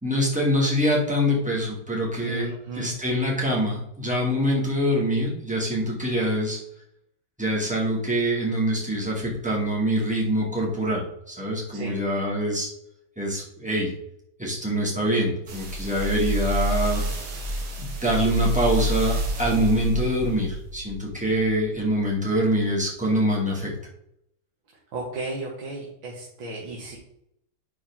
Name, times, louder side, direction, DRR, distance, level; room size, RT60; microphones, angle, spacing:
voice 1, 0.0-2.5 2.7-6.6 7.4-12.7 13.2-13.9 14.4-17.0 17.8-23.7, equal, 5° right, -4 dB, 2.3 m, -24 dB
voice 2, 2.2-2.9 11.7-12.0 19.4-19.6 24.9-27.0, right 3 dB, 60° right, -3 dB, 2.2 m, -35 dB
sound 1, 15.5-22.0 22.5-22.6, equal, 80° right, 2.5 m, -29 dB
10.5 x 4.7 x 3.7 m, 0.76 s
omnidirectional pair, 2.4 m